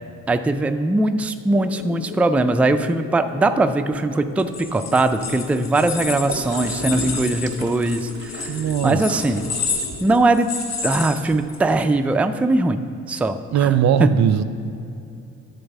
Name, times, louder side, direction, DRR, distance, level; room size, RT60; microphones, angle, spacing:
voice 1, 0.3-8.6 8.8-9.5 10.0-10.5 10.8-13.7 14.0-14.2, right 2 dB, 5° right, 8 dB, 0.3 m, -20 dB
sound 1, 1.5-10.2, left 8 dB, 90° left, 0.6 m, -38 dB
sound 2, 4.4-11.8, left 5 dB, 60° left, 1.5 m, -30 dB
Gurgling / Toilet flush, 6.3-10.3, right 3 dB, 40° right, 1.0 m, -35 dB
voice 2, 8.5-9.0 13.5-14.4, right 9 dB, 65° right, 12 dB, 0.5 m, -19 dB
10.0 x 4.0 x 7.0 m, 2.7 s
cardioid pair, 90°, 30 cm